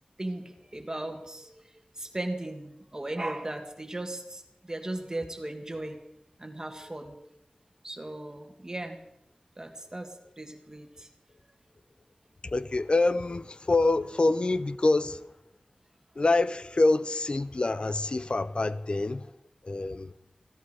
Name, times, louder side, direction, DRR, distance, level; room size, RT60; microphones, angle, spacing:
voice 1, 0.2-1.5 2.0-6.0 6.4-7.2 7.8-9.0 9.6-11.1, right 1 dB, 30° right, 1.8 m, -37 dB
voice 2, 12.5-15.3 16.2-19.3 19.6-20.1, left 2 dB, 45° left, 0.6 m, -26 dB
16.0 x 13.5 x 4.9 m
wide cardioid pair, 75°, 2 cm